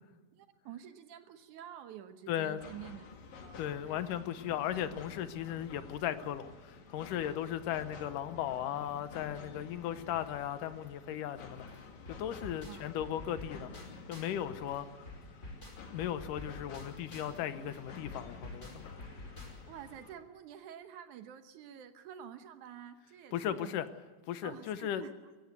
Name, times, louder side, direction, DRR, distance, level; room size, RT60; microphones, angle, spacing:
voice 1, 0.3-3.1 3.4-4.2 12.7-12.9 19.6-23.8 24.4-25.1, right 10 dB, 70° right, 10 dB, 2.3 m, -49 dB
voice 2, 2.3-2.6 3.6-11.7 12.1-13.7 14.1-14.9 15.9-19.0 23.3-23.9 24.3-25.0, left 10 dB, 75° left, 12 dB, 2.4 m, -36 dB
sound 1, 2.6-20.1, left 4 dB, 60° left, 3.4 m, -51 dB
sound 2, 11.7-14.4 14.7-19.8, left 2 dB, 20° left, 5.5 m, -49 dB
23.5 x 15.5 x 8.2 m, 1.3 s
omnidirectional pair, 4.0 m